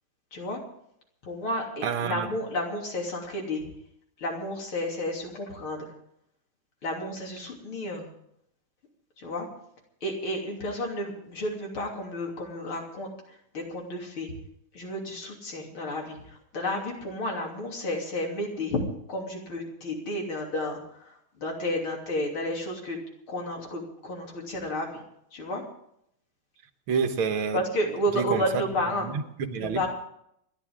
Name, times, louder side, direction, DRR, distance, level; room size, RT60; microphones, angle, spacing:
voice 1, 1.2-3.7 4.2-5.9 6.8-8.1 9.2-9.5 10.0-13.1 13.5-14.3 14.7-18.8 19.1-23.0 23.3-24.9 25.3-25.6 27.5-29.1 29.5-29.9, left 1 dB, 80° left, 4.0 m, -31 dB
voice 2, 1.8-2.3 26.9-27.6 28.2-28.4 29.0-29.8, right 6 dB, 85° right, 2.1 m, -28 dB
28.0 x 11.5 x 3.7 m
omnidirectional pair, 2.3 m